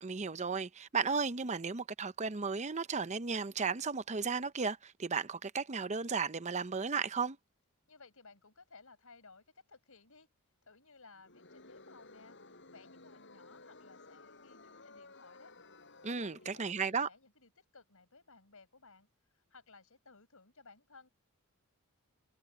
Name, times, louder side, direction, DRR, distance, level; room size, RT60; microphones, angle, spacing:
voice 1, 0.0-7.4 16.0-17.1, right 5 dB, 30° right, 0.7 m, -34 dB
voice 2, 7.9-10.3 10.6-15.5 16.1-21.1, left 4 dB, 70° left, 5.2 m, -59 dB
Crowd, 11.2-16.9, left 3 dB, 55° left, 7.4 m, -56 dB
head